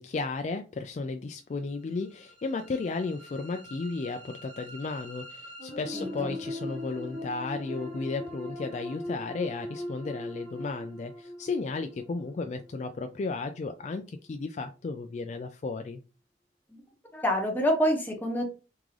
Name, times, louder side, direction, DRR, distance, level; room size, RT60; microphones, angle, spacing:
voice 1, 0.0-16.0, left 3 dB, 40° left, 6 dB, 0.3 m, -34 dB
sound 1, 1.8-13.8, left 1 dB, 40° right, 1.3 m, -41 dB
voice 2, 5.9-6.3 16.7-16.8 17.1-18.5, equal, 10° left, 1 dB, 1.0 m, -27 dB
3.7 x 3.6 x 3.2 m, 0.33 s
head